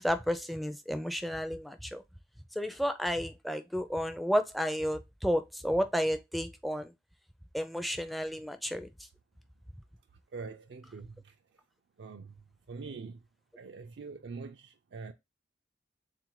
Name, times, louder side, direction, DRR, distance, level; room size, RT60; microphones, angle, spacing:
voice 1, 0.0-2.0 2.6-6.9 7.5-8.9, equal, ahead, 0.4 m, -32 dB
voice 2, 10.3-11.3 12.0-12.3 12.7-13.2 13.6-15.1, right 4 dB, 70° right, 0.4 m, -44 dB
3.7 x 2.5 x 4.6 m
head